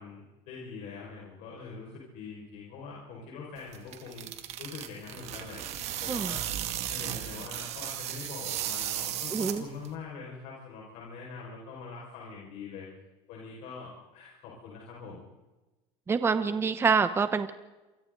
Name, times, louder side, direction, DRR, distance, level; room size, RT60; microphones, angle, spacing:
voice 1, 0.0-4.3 4.6-5.6 6.0-6.4 6.9-12.9 13.3-15.3, left 4 dB, 60° left, -3 dB, 5.7 m, -43 dB
sound 1, 3.6-9.9, right 11 dB, 50° right, 2.2 m, -36 dB
voice 2, 9.3-9.6 16.1-17.5, right 5 dB, 15° right, 11 dB, 1.0 m, -26 dB
28.5 x 24.0 x 4.0 m, 1.1 s
cardioid pair, 135°, 14 cm